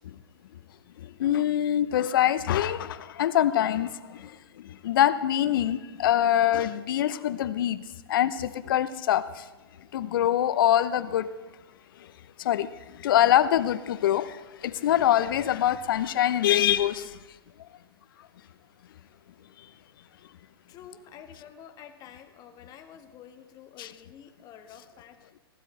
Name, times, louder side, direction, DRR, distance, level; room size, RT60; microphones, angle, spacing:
voice 1, 1.0-9.5 9.9-11.3 12.0-12.1 12.4-17.2 17.6-17.7 19.6-19.7 23.8-23.9, left 11 dB, 60° left, 15 dB, 0.8 m, -25 dB
voice 2, 4.0-4.4 6.1-6.7 20.7-25.3, left 8 dB, 30° left, 7 dB, 1.5 m, -49 dB
19.5 x 16.5 x 3.4 m, 1.2 s
hypercardioid pair, 120°, 13 cm